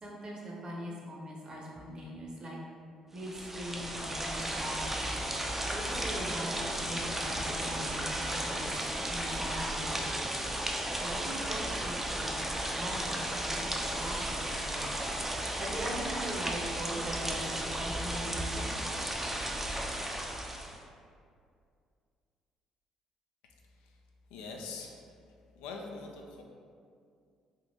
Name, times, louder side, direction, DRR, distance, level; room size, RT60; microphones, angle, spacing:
voice 1, 0.0-2.6 3.1-5.2 5.7-8.7 9.1-10.3 11.0-15.0 15.6-18.6, equal, 40° right, -3 dB, 0.8 m, -41 dB
sound 1, 3.2-20.8, right 1 dB, 15° right, 0.4 m, -34 dB
voice 2, 24.3-25.0 25.6-26.4, left 4 dB, 75° left, 1 dB, 0.3 m, -43 dB
3.6 x 2.5 x 2.7 m, 2.3 s
hypercardioid pair, 50°, 2 cm